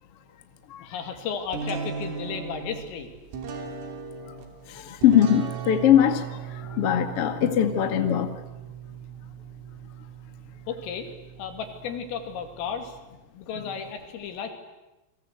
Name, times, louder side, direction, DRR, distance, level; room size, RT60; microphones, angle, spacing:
voice 1, 0.8-3.1 10.7-11.1 11.4-13.0 13.3-14.5, left 6 dB, 80° left, 5 dB, 5.3 m, -34 dB
sound 1, 1.5-13.0, right 6 dB, 75° right, 5.4 m, -38 dB
voice 2, 4.7-8.4, left 10 dB, 50° left, 6 dB, 1.7 m, -21 dB
30.0 x 23.5 x 8.3 m, 1.0 s
omnidirectional pair, 5.9 m